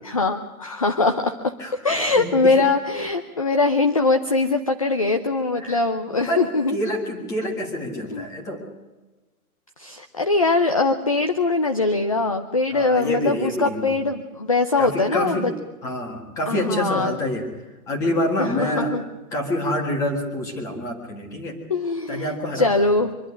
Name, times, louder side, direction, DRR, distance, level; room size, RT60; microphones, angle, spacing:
voice 1, 0.1-1.5 1.8-6.8 8.1-8.3 9.8-15.5 16.5-17.1 18.4-19.0 21.7-23.1, left 3 dB, 25° left, 7 dB, 0.6 m, -22 dB
voice 2, 1.6-2.6 2.9-3.0 5.6-5.8 6.1-8.6 12.7-14.1 14.8-15.5 15.8-17.5 17.9-18.9 19.3-21.6 22.1-22.9, left 1 dB, 5° left, 2 dB, 1.7 m, -27 dB
24.5 x 11.5 x 9.8 m, 1.2 s
hypercardioid pair, 180°, 44 cm